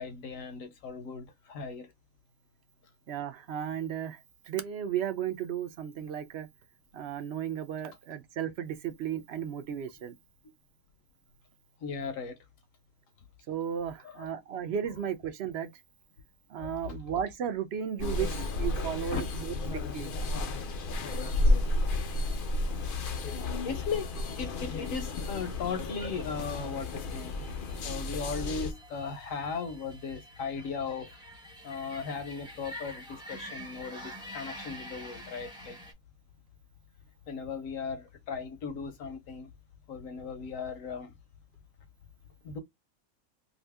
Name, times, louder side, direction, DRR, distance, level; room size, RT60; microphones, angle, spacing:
voice 1, 0.0-1.9 11.8-12.4 14.0-14.3 16.6-16.8 19.1-19.2 23.6-27.3 27.8-31.2 31.6-35.8 37.3-39.5 39.9-41.1 42.4-42.6, left 5 dB, 75° left, 1.1 m, -37 dB
voice 2, 3.1-4.2 4.5-6.5 6.9-10.2 13.5-15.7 16.5-19.5 19.9-20.1 22.2-22.4 26.0-26.1, right 9 dB, 65° right, 0.7 m, -34 dB
sound 1, 18.0-28.7, left 2 dB, 55° left, 0.6 m, -32 dB
sound 2, 21.2-35.9, equal, 5° right, 0.7 m, -49 dB
2.7 x 2.6 x 3.3 m
omnidirectional pair, 1.5 m